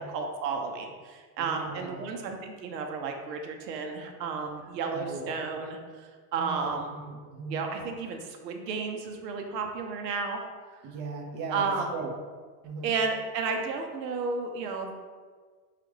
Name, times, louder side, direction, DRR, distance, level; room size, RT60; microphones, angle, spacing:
voice 1, 0.0-5.8 6.3-7.0 7.5-10.4 11.5-11.9 12.8-14.9, right 4 dB, 85° right, 3 dB, 0.8 m, -32 dB
voice 2, 1.4-2.1 4.9-5.4 6.4-7.6 10.8-12.1 12.6-12.9, right 4 dB, 30° right, 1 dB, 0.5 m, -38 dB
4.9 x 2.4 x 3.2 m, 1.5 s
supercardioid pair, 125°, 48 cm